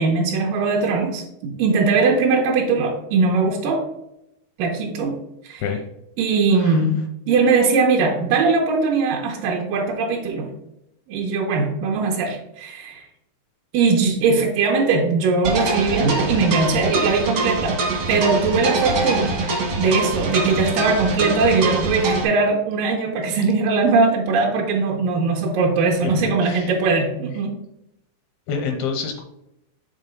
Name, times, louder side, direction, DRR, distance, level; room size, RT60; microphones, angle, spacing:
voice 1, 0.0-3.9 4.6-5.2 5.4-5.6 6.2-6.9 7.3-10.5 11.1-13.0 13.7-17.8 18.1-19.3 19.8-27.6, right 4 dB, 85° right, -1 dB, 1.9 m, -20 dB
voice 2, 6.5-6.9 26.0-26.7 28.5-29.2, left 6 dB, 80° left, 4 dB, 2.4 m, -28 dB
sound 1, 15.4-22.2, right 3 dB, 65° right, 1.2 m, -23 dB
6.7 x 3.7 x 5.1 m, 0.83 s
omnidirectional pair, 4.9 m